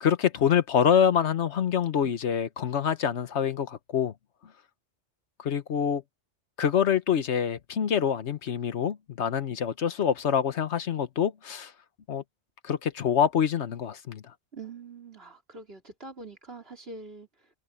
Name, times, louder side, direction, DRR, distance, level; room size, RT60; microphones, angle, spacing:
voice 1, 0.0-4.1 5.4-6.0 6.6-11.7 12.1-12.2 12.6-14.2, left 8 dB, 75° left, 1.3 m, -26 dB
voice 2, 14.5-17.5, right 3 dB, 60° right, 4.0 m, -44 dB
omnidirectional pair, 1.2 m